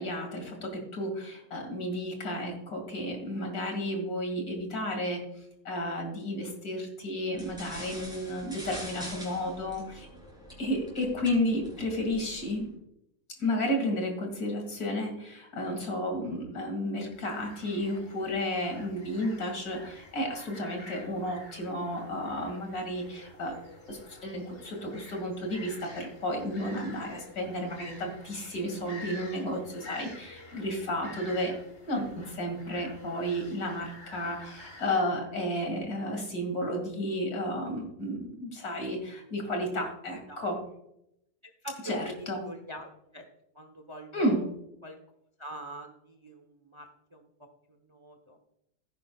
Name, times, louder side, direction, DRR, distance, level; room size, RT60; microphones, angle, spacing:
voice 1, 0.0-5.3 5.6-10.1 10.6-12.7 13.4-23.5 23.9-31.6 31.9-40.6 41.8-42.4 44.1-44.4, left 1 dB, 70° left, 3 dB, 2.8 m, -32 dB
sound 1, 7.3-12.6, equal, ahead, 3.4 m, -45 dB
sound 2, 17.1-35.0, left 1 dB, 35° left, 2.0 m, -49 dB
voice 2, 41.6-43.2 43.5-44.4 44.8-45.0 45.4-47.3 47.7-48.4, right 1 dB, 25° right, 5 dB, 0.9 m, -44 dB
16.0 x 9.1 x 2.3 m, 0.79 s
omnidirectional pair, 1.7 m